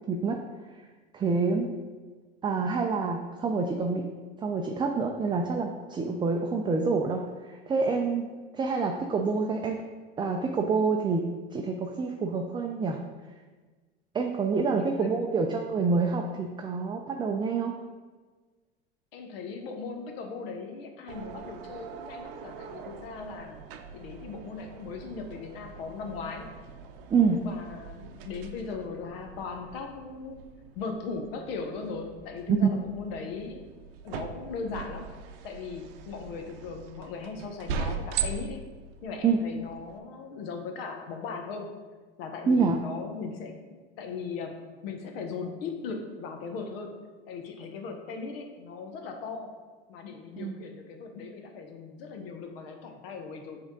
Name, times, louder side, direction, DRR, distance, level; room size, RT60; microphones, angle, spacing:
voice 1, 0.1-0.4 1.1-1.7 2.4-4.0 4.4-8.3 8.5-9.8 10.2-11.3 11.5-13.0 14.1-17.7 27.1-27.4 32.5-32.7 39.2-39.4 42.5-42.8 50.4-50.6, right 4 dB, 15° right, 3 dB, 0.4 m, -27 dB
voice 2, 14.8-15.6 19.1-23.6 23.9-26.5 27.3-30.4 30.7-33.6 34.0-35.1 35.4-38.6 39.0-41.7 42.2-43.6 44.0-47.0 47.3-49.6 49.9-53.6, left 4 dB, 65° left, 4 dB, 1.1 m, -38 dB
sound 1, 21.1-40.0, right 6 dB, 65° right, 0.6 m, -41 dB
7.0 x 3.6 x 3.9 m, 1.3 s
hypercardioid pair, 85°, 32 cm